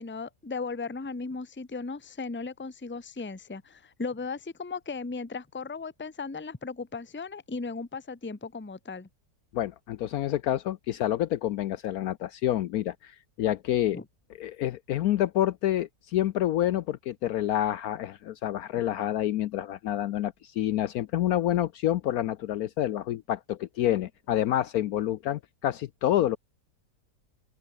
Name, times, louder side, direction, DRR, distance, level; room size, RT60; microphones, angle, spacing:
voice 1, 0.0-9.1 13.9-14.0, left 4 dB, 10° left, 0.8 m, -36 dB
voice 2, 9.5-14.0 14.4-26.4, left 12 dB, 70° left, 1.0 m, -28 dB
open air
omnidirectional pair, 1.8 m